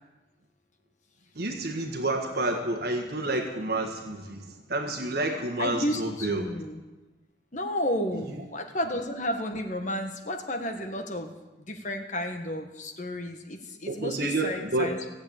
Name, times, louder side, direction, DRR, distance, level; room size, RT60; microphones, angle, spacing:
voice 1, 1.3-6.4 8.1-8.4 13.9-14.9, right 2 dB, 55° right, 3 dB, 1.6 m, -29 dB
voice 2, 5.6-6.8 7.5-11.3 11.6-15.0, left 1 dB, 40° left, 5 dB, 1.6 m, -32 dB
16.5 x 8.0 x 8.7 m, 1.2 s
head